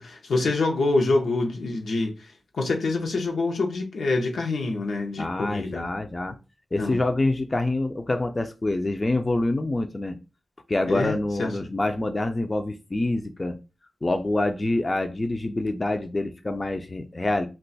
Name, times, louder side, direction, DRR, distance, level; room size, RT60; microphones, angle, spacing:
voice 1, 0.0-2.3 2.6-5.8 6.8-7.0 10.9-11.5, left 3 dB, 90° left, 0.6 m, -26 dB
voice 2, 5.2-6.4 6.7-10.2 10.7-13.6 14.0-17.5, left 2 dB, 30° left, 0.4 m, -26 dB
2.4 x 2.2 x 3.9 m
wide cardioid pair, 75°, 0 cm